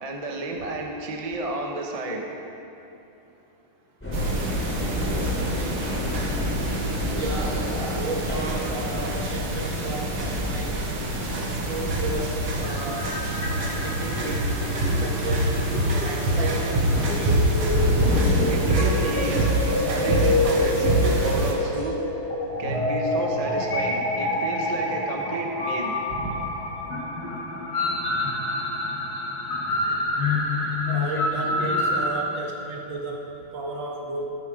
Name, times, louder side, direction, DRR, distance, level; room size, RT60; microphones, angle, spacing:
voice 1, 0.0-2.3 18.5-22.0 22.6-25.9, right 2 dB, 25° right, 1 dB, 0.9 m, -31 dB
sound 1, 4.0-19.7 20.1-20.4 21.1-21.9 22.7-22.8, left 2 dB, 5° left, 3.2 m, -31 dB
sound 2, 4.1-21.5, right 2 dB, 90° right, 2.5 m, -26 dB
voice 2, 7.1-7.6 8.0-10.9 11.4-13.2 13.8-14.4 15.0-15.5 16.0-16.7 17.1-17.5 26.1-26.5 30.9-34.3, right 2 dB, 65° right, 0 dB, 2.2 m, -33 dB
sound 3, 12.5-32.1, left 2 dB, 50° left, 2.2 m, -28 dB
14.0 x 12.0 x 5.1 m, 2.9 s
omnidirectional pair, 2.3 m